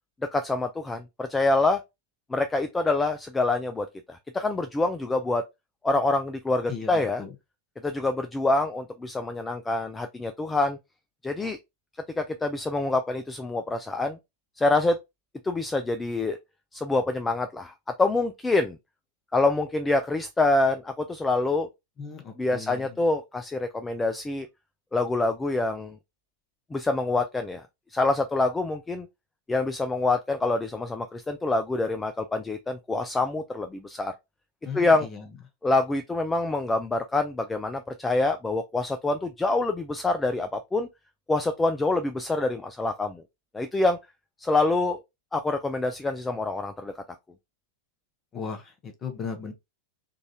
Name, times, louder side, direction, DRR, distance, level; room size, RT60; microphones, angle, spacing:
voice 1, 0.3-1.8 2.3-5.4 5.8-7.2 7.8-10.8 11.2-11.6 12.2-14.2 14.6-15.0 15.4-16.4 16.7-18.8 19.3-21.7 22.4-24.5 24.9-26.0 26.7-27.6 27.9-29.1 29.5-34.1 34.7-35.1 35.6-40.9 41.3-43.2 43.5-44.0 44.4-45.0 45.3-46.9, left 2 dB, 10° left, 0.3 m, -26 dB
voice 2, 6.7-7.3 22.0-23.0 34.6-35.3 48.3-49.5, left 6 dB, 25° left, 0.9 m, -37 dB
3.8 x 2.5 x 2.8 m
figure-of-eight pair, 90°, 0 cm